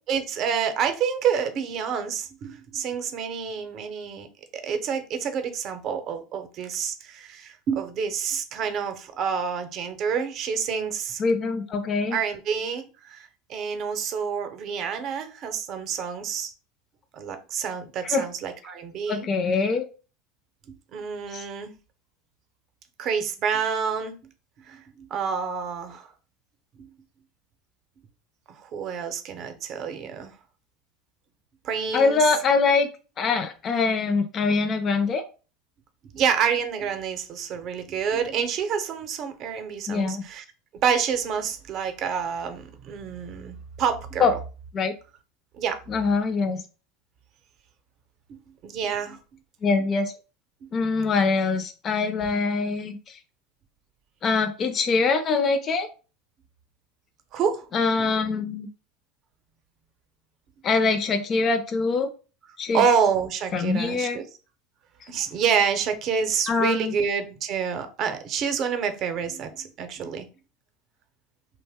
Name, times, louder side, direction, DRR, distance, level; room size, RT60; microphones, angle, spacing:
voice 1, 0.1-4.3 4.5-11.2 12.1-16.5 17.1-19.3 20.7-21.7 23.0-24.2 24.6-26.1 26.8-26.9 28.5-30.4 31.6-32.3 36.1-40.4 40.7-44.3 45.5-45.8 48.3-49.2 50.6-50.7 57.3-57.7 62.7-64.3 65.1-70.3, right 7 dB, 50° right, 8 dB, 0.6 m, -28 dB
voice 2, 11.2-12.2 18.1-18.3 19.1-19.8 21.3-21.4 31.9-32.9 33.2-35.2 39.9-40.2 44.2-44.3 44.7-44.9 45.9-46.6 49.6-50.1 50.7-53.0 54.2-55.9 57.7-58.7 60.6-62.1 62.6-62.8 63.5-64.2 66.5-66.9, left 4 dB, 35° left, 7 dB, 0.4 m, -23 dB
2.6 x 2.1 x 3.4 m, 0.34 s
supercardioid pair, 100°, 0 cm